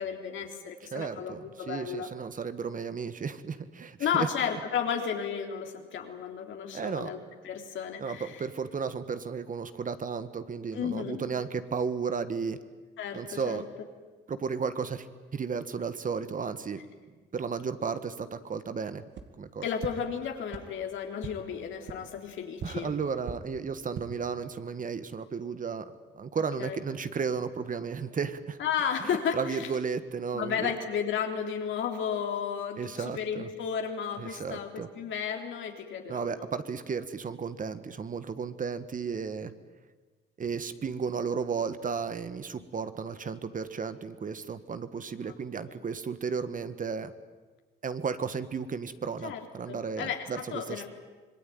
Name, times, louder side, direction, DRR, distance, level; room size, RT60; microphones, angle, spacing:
voice 1, 0.0-2.1 4.0-7.2 7.4-8.5 10.7-11.2 13.0-13.6 19.6-22.9 26.6-26.8 28.6-29.7 30.3-36.4 45.3-45.4 49.2-50.9, left 7 dB, 75° left, 4 dB, 3.5 m, -33 dB
voice 2, 0.9-4.3 6.7-7.1 8.0-12.6 13.1-13.6 14.3-15.1 15.3-16.8 17.3-19.0 19.4-19.7 22.6-28.6 29.3-30.7 32.8-33.5 34.2-34.9 36.1-39.5 40.4-47.1 47.8-50.9, right 5 dB, 40° right, 11 dB, 1.6 m, -34 dB
sound 1, 19.1-19.2 19.8-19.9 20.5-20.6 21.2-21.3 21.8-21.9 22.6-22.7 23.2-23.3 23.8-24.0, right 7 dB, 65° right, 2.2 m, -37 dB
26.5 x 20.5 x 9.3 m, 1.3 s
cardioid pair, 90°, 20 cm